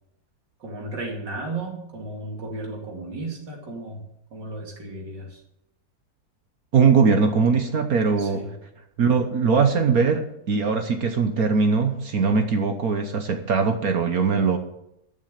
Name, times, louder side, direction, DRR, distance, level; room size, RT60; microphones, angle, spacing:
voice 1, 0.6-5.4 8.2-8.6, right 2 dB, 85° right, 0 dB, 3.2 m, -34 dB
voice 2, 6.7-8.4 9.0-14.6, right 5 dB, 60° right, 6 dB, 1.5 m, -21 dB
12.5 x 7.5 x 8.2 m, 0.80 s
omnidirectional pair, 1.8 m